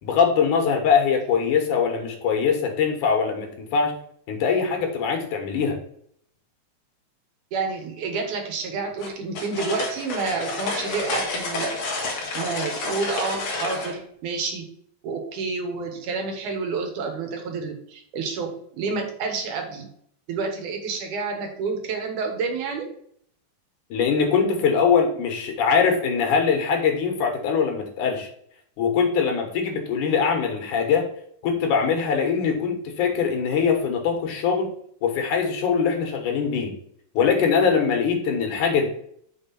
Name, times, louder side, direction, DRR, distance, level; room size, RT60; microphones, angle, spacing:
voice 1, 0.0-3.9 4.3-5.8 23.9-28.3 28.8-31.1 31.4-34.7 35.0-36.7 37.1-38.9, left 6 dB, 85° left, 3 dB, 2.8 m, -22 dB
voice 2, 7.5-11.8 12.3-14.6 15.0-19.9 20.3-22.9, right 4 dB, 90° right, 3 dB, 2.9 m, -29 dB
sound 1, 9.0-14.0, left 3 dB, 55° left, 1.9 m, -29 dB
6.4 x 3.8 x 5.8 m, 0.66 s
omnidirectional pair, 3.5 m